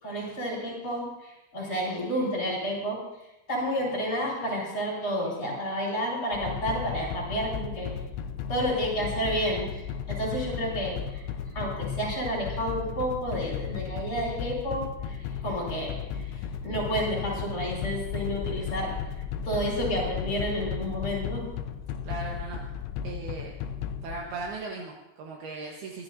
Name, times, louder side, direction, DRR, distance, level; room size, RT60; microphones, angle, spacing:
voice 1, 0.0-3.0 3.5-7.9 8.5-11.2 11.5-15.2 15.4-16.0 16.6-19.0 19.4-21.5, equal, 20° left, -3 dB, 5.1 m, -30 dB
sound 1, 6.3-24.6, left 8 dB, 90° left, 3.0 m, -35 dB
voice 2, 22.0-22.6 23.0-23.5 24.0-26.0, right 3 dB, 70° right, -1 dB, 3.0 m, -37 dB
24.0 x 14.0 x 2.7 m, 0.93 s
omnidirectional pair, 4.9 m